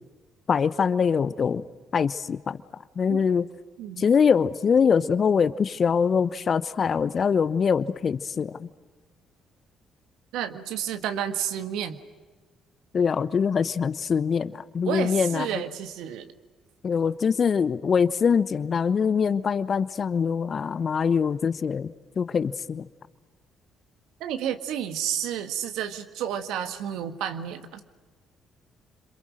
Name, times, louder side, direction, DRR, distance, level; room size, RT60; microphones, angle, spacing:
voice 1, 0.5-1.6 1.9-2.6 3.0-3.5 4.0-8.7 12.9-15.6 16.8-22.8, left 6 dB, 45° left, 13 dB, 0.9 m, -23 dB
voice 2, 3.8-4.1 10.3-12.0 14.8-16.3 24.2-27.8, right 9 dB, 70° right, 8 dB, 1.7 m, -31 dB
29.5 x 27.0 x 6.5 m, 1.3 s
hypercardioid pair, 45°, 0 cm